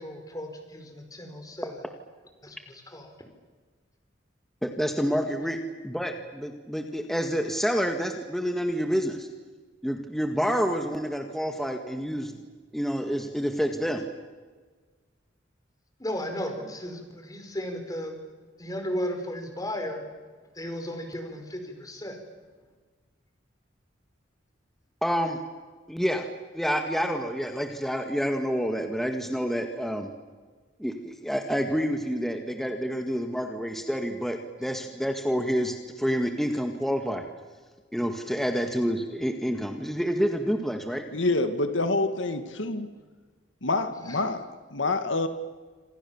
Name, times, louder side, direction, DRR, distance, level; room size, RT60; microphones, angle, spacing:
voice 1, 0.0-1.8 2.4-3.1 16.0-18.2 18.6-20.1 20.5-22.2 44.0-44.2, equal, 20° left, 5 dB, 4.9 m, -35 dB
voice 2, 4.6-5.6 5.8-9.3 9.8-12.3 12.7-14.0 25.0-25.4 25.9-26.2 26.5-30.1 30.8-37.2 37.9-41.0, equal, ahead, 5 dB, 1.9 m, -28 dB
voice 3, 41.1-42.9 43.6-45.3, left 2 dB, 85° left, 9 dB, 2.0 m, -27 dB
28.0 x 27.0 x 7.3 m, 1.4 s
head